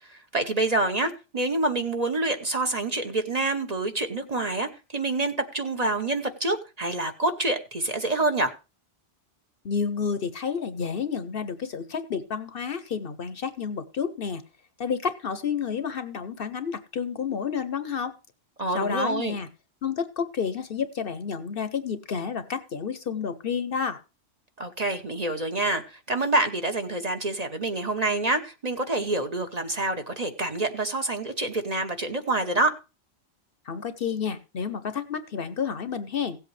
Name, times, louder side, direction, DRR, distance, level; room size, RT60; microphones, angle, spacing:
voice 1, 0.1-8.5 18.6-19.3 24.6-32.7, right 2 dB, 35° right, 6 dB, 1.0 m, -27 dB
voice 2, 9.6-14.4 14.8-18.1 18.7-19.5 19.8-24.0 33.6-36.4, left 6 dB, 55° left, 12 dB, 0.9 m, -30 dB
16.5 x 7.9 x 3.2 m, 0.30 s
omnidirectional pair, 1.2 m